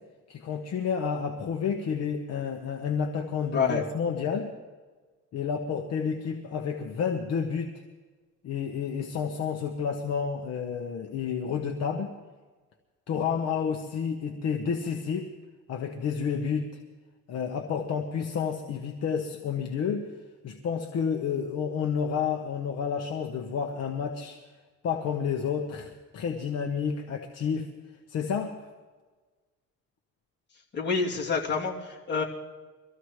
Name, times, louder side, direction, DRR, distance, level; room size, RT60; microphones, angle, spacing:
voice 1, 0.3-4.5 5.3-7.7 8.4-12.1 13.1-15.3 15.7-16.7 17.3-20.1 20.4-24.4 24.8-27.7 28.1-28.6, left 6 dB, 60° left, 3 dB, 1.2 m, -30 dB
voice 2, 3.5-3.8 30.7-32.2, left 5 dB, 35° left, -4 dB, 2.9 m, -27 dB
23.5 x 14.5 x 3.3 m, 1.4 s
cardioid pair, 125°, 29 cm